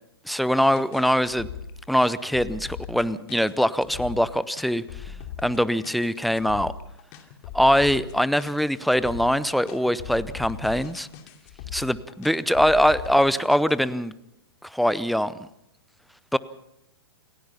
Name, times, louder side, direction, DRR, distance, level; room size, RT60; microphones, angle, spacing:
voice 1, 0.3-1.5 1.9-4.8 5.4-6.7 7.5-11.1 11.7-14.1 14.6-15.5 16.3-16.4, equal, ahead, 17 dB, 0.6 m, -22 dB
sound 1, 0.6-13.7, left 8 dB, 40° left, 2.7 m, -40 dB
28.0 x 16.5 x 5.7 m, 0.82 s
figure-of-eight pair, 110°, 13 cm